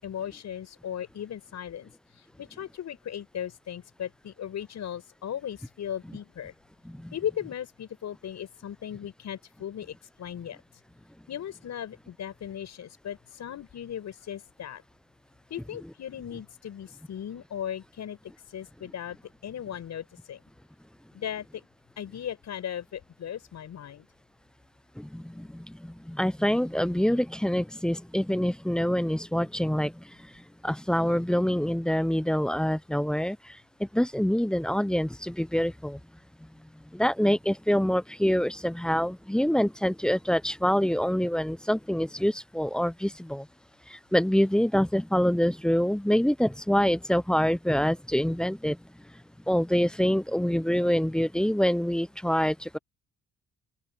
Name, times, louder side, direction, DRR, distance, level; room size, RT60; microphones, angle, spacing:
voice 1, 0.0-6.5 7.1-10.6 11.3-14.8 15.5-18.2 18.5-19.2 19.4-20.4 21.1-21.6 22.0-24.1, left 9 dB, 65° left, 6.5 m, -37 dB
voice 2, 25.0-25.6 26.1-29.9 30.6-33.4 33.9-36.0 36.9-43.4 44.1-48.8 49.5-52.8, equal, 5° left, 0.4 m, -25 dB
open air
cardioid pair, 90°, 30 cm